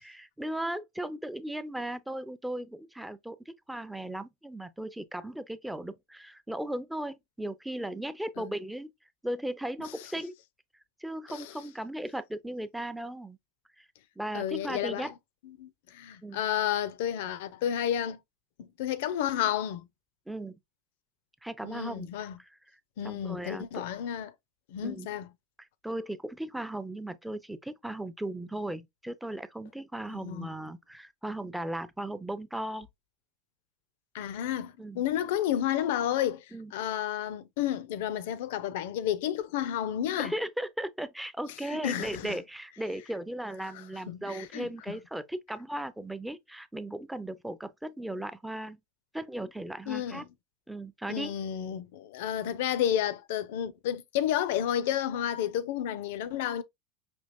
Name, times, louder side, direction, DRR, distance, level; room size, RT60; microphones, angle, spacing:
voice 1, 0.0-8.9 9.2-10.3 11.0-13.4 13.8-13.9 14.2-15.1 16.2-16.4 20.3-20.6 21.4-22.1 22.4-22.5 23.0-23.8 24.8-25.1 25.8-32.9 34.8-35.0 36.5-36.7 40.2-48.8 49.1-50.2 50.7-51.3, right 1 dB, 5° right, 0.5 m, -37 dB
voice 2, 14.3-15.1 15.4-18.2 18.6-19.8 21.6-22.4 23.0-24.3 24.7-25.3 30.1-30.5 34.1-40.3 41.6-42.4 43.6-43.7 44.1-45.0 49.9-50.3 51.1-56.6, left 10 dB, 65° left, 0.5 m, -31 dB
5.3 x 2.8 x 2.6 m
hypercardioid pair, 85°, 0 cm